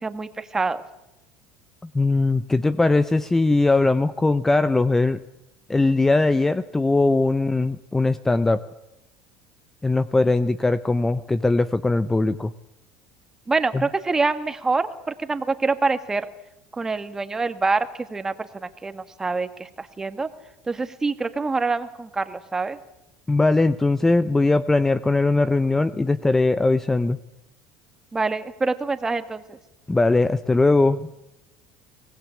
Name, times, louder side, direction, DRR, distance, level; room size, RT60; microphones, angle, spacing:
voice 1, 0.0-0.8 13.5-16.3 16.8-20.3 20.7-22.8 28.1-29.6, right 3 dB, 20° right, 10 dB, 1.8 m, -26 dB
voice 2, 1.9-5.2 5.7-8.6 9.8-12.5 13.7-13.9 23.3-27.2 29.9-31.1, left 2 dB, 10° left, 14 dB, 0.8 m, -20 dB
24.0 x 18.5 x 8.4 m, 0.90 s
supercardioid pair, 95°, 3 cm